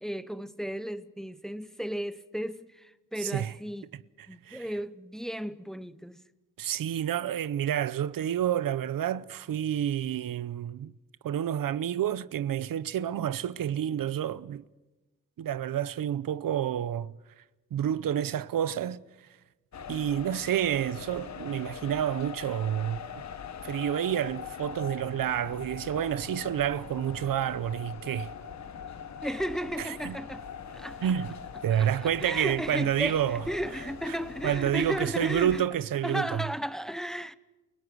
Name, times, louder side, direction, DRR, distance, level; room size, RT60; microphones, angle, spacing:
voice 1, 0.0-3.9 4.3-6.2 29.2-30.5 30.7-31.1 31.7-35.7 36.0-37.3, equal, ahead, 0.9 m, -34 dB
voice 2, 3.2-3.5 4.5-4.6 6.6-10.9 11.2-14.6 15.4-17.1 17.7-19.0 19.9-23.1 23.6-28.3 29.8-30.2 31.0-31.3 31.6-33.4 34.4-36.4, right 10 dB, 85° right, 0.7 m, -29 dB
sound 1, 19.7-35.6, left 7 dB, 55° left, 1.2 m, -42 dB
29.5 x 18.5 x 6.2 m
wide cardioid pair, 100°, 33 cm